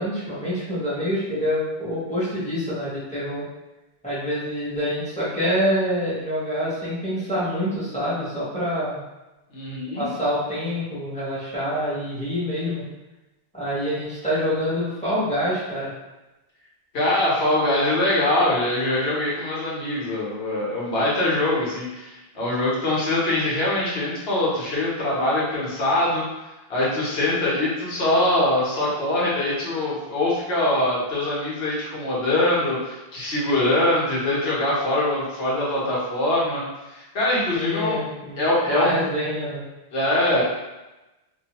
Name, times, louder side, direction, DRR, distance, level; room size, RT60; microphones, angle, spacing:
voice 1, 0.0-3.4 4.0-9.0 9.9-12.8 13.5-15.9 37.5-38.4 38.7-39.6, equal, 5° left, -11 dB, 0.9 m, -26 dB
voice 2, 9.5-10.0 16.9-26.3 26.7-36.6 36.9-38.0 38.4-39.0 39.9-40.4, left 1 dB, 70° left, -7 dB, 1.1 m, -23 dB
2.5 x 2.3 x 2.9 m, 1.0 s
omnidirectional pair, 1.1 m